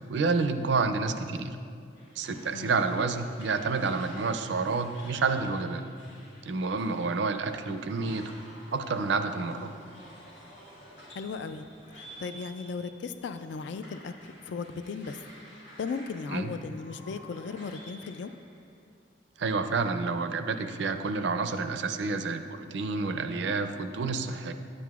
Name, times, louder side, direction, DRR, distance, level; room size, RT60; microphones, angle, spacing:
voice 1, 0.1-1.6 2.2-5.8 6.4-8.2 8.7-9.7 16.3-16.5 19.4-24.5, right 4 dB, 70° right, 8 dB, 0.4 m, -29 dB
sound 1, 2.0-18.8, equal, 90° left, 1.4 m, -51 dB
voice 2, 11.1-11.7 11.9-15.2 15.8-18.3, left 4 dB, 70° left, 10 dB, 0.3 m, -37 dB
10.0 x 7.6 x 2.4 m, 2.3 s
head